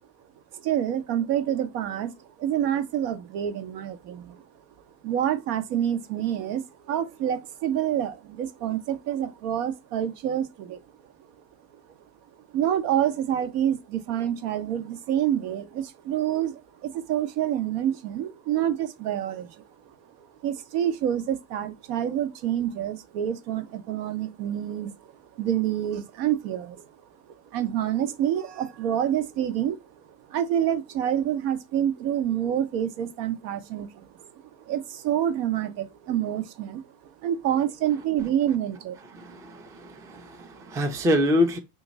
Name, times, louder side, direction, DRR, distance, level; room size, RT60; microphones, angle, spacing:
voice 1, 0.5-4.5 5.0-10.8 12.5-19.6 20.2-26.9 27.3-29.8 30.1-39.0, right 10 dB, 75° right, 0.8 m, -27 dB
voice 2, 39.1-41.6, left 1 dB, 10° right, 0.3 m, -26 dB
2.9 x 2.5 x 3.9 m
hypercardioid pair, 85°, 50 cm